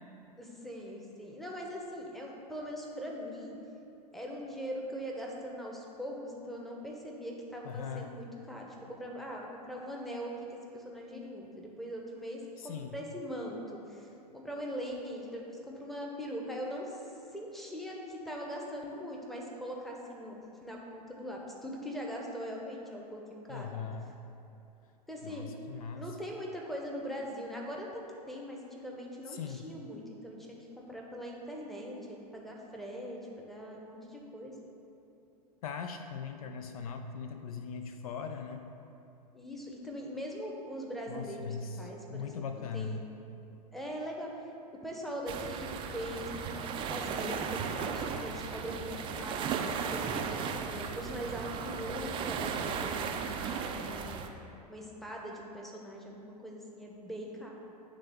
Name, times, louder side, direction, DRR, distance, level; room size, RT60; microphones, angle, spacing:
voice 1, 0.4-3.6 4.1-14.1 14.3-17.0 17.3-23.7 25.1-25.5 26.0-34.5 39.3-42.5 42.7-43.1 43.7-44.5 44.7-54.3 54.7-57.5, equal, ahead, -2 dB, 0.8 m, -41 dB
voice 2, 7.6-8.1 12.6-12.9 23.5-24.1 25.2-26.0 29.3-29.7 35.6-38.7 41.1-41.8 42.1-43.0, left 6 dB, 60° left, 6 dB, 0.4 m, -40 dB
sound 1, 45.3-54.3, right 6 dB, 25° right, 0.4 m, -36 dB
9.4 x 3.5 x 3.5 m, 2.8 s
figure-of-eight pair, 95°, 21 cm